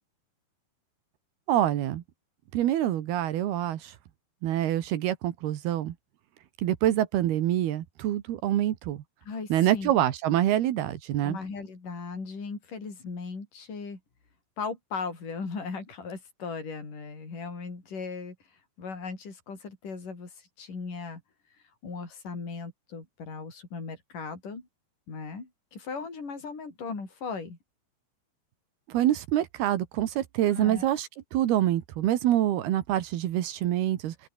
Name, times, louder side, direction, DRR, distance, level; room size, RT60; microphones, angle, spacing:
voice 1, 1.5-2.0 2.5-3.9 4.4-6.0 6.6-9.0 9.5-11.4 28.9-34.2, right 12 dB, 80° right, 3.5 m, -26 dB
voice 2, 9.2-9.9 11.2-14.0 14.6-18.3 18.8-20.3 20.6-21.2 21.8-24.7 25.1-27.6 30.5-30.9, left 4 dB, 55° left, 8.1 m, -37 dB
open air
omnidirectional pair, 4.5 m